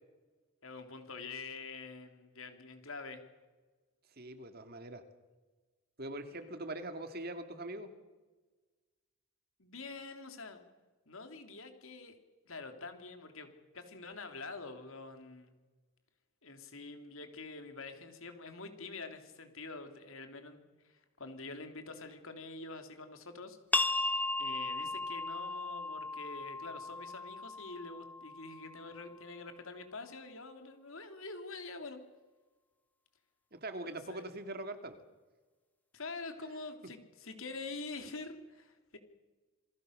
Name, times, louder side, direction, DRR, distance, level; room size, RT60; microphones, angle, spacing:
voice 1, 0.6-3.2 9.6-10.6 11.1-12.1 12.4-13.5 13.7-15.6 16.4-23.6 24.4-32.0 33.8-34.2 35.9-39.0, left 3 dB, 65° left, 7 dB, 3.3 m, -46 dB
voice 2, 4.2-5.0 6.0-7.9 33.5-35.0, right 1 dB, 45° right, 8 dB, 2.3 m, -42 dB
sound 1, 23.7-29.1, left 2 dB, 5° left, 1.0 m, -36 dB
28.0 x 21.0 x 6.7 m, 1.3 s
head